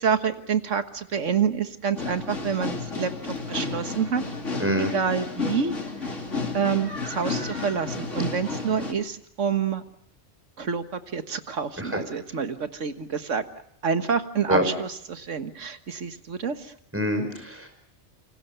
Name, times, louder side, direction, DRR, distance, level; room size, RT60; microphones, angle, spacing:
voice 1, 0.0-3.1 3.5-4.2 4.8-5.8 6.5-9.8 10.6-13.4 13.8-16.6, right 6 dB, 90° right, 9 dB, 1.8 m, -27 dB
sound 1, 1.9-8.9, left 3 dB, 90° left, 3.3 m, -32 dB
voice 2, 4.6-4.9 11.8-12.0 14.5-14.6 16.9-17.7, equal, 10° right, 6 dB, 5.4 m, -25 dB
28.0 x 25.0 x 6.8 m, 0.69 s
omnidirectional pair, 1.2 m